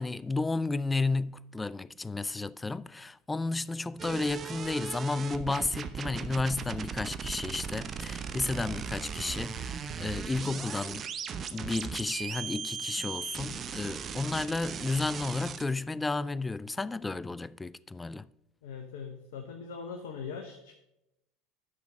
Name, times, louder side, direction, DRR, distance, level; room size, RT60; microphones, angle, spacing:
voice 1, 0.0-11.1 11.5-18.3, left 3 dB, 15° left, 0.3 m, -32 dB
sound 1, 4.0-15.6, right 7 dB, 35° right, 0.8 m, -38 dB
voice 2, 18.6-20.7, left 5 dB, 70° left, 0.9 m, -41 dB
10.0 x 6.2 x 5.2 m
hypercardioid pair, 75°, 0 cm